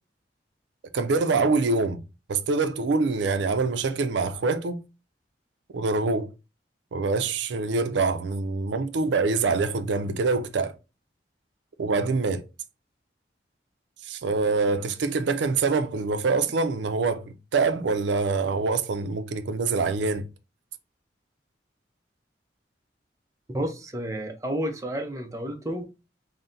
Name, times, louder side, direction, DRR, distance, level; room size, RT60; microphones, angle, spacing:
voice 1, 0.9-2.0 2.3-4.8 5.7-6.3 6.9-10.7 11.8-12.4 14.0-20.3, right 4 dB, 80° right, 0.4 m, -25 dB
voice 2, 23.5-25.9, right 1 dB, 20° right, 0.5 m, -31 dB
4.0 x 2.1 x 3.8 m
head